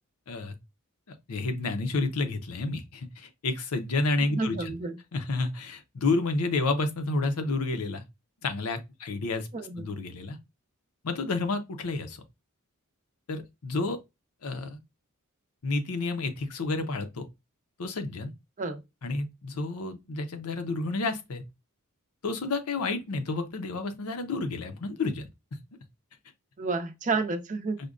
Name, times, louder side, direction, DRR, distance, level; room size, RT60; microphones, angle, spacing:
voice 1, 1.3-4.7 5.1-8.0 8.4-9.5 9.8-10.4 11.0-12.2 13.3-14.0 14.4-14.8 15.6-17.3 17.8-18.3 19.0-21.4 22.2-25.3, left 3 dB, 80° left, 0.6 m, -30 dB
voice 2, 4.2-5.0 9.5-9.8 18.6-18.8 26.6-27.8, right 3 dB, 35° right, 0.5 m, -30 dB
5.0 x 2.2 x 2.4 m
head